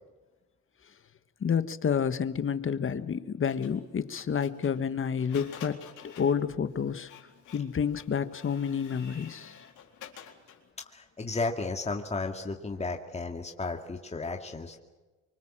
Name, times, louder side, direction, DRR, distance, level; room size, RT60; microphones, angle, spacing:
voice 1, 1.4-7.1 7.5-9.5, left 7 dB, 45° left, 12 dB, 1.6 m, -29 dB
Printer, 3.5-10.7, left 8 dB, 80° left, 4.1 m, -50 dB
voice 2, 10.9-14.8, left 3 dB, 20° left, 3 dB, 2.3 m, -33 dB
25.5 x 23.5 x 7.6 m, 1.2 s
cardioid pair, 90°, 30 cm